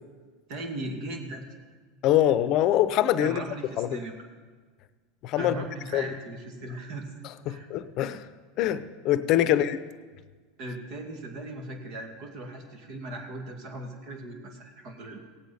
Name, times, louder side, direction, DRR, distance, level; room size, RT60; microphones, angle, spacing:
voice 1, 0.5-1.5 3.2-4.2 5.4-7.1 7.5-7.7 9.4-9.6 10.6-15.2, right 1 dB, 55° right, 3 dB, 2.3 m, -38 dB
voice 2, 2.0-3.4 3.8-4.0 5.2-5.6 5.9-6.1 7.5-8.2 8.6-9.8, left 12 dB, 50° left, 14 dB, 0.6 m, -24 dB
17.5 x 8.2 x 4.2 m, 1.5 s
hypercardioid pair, 95°, 0 cm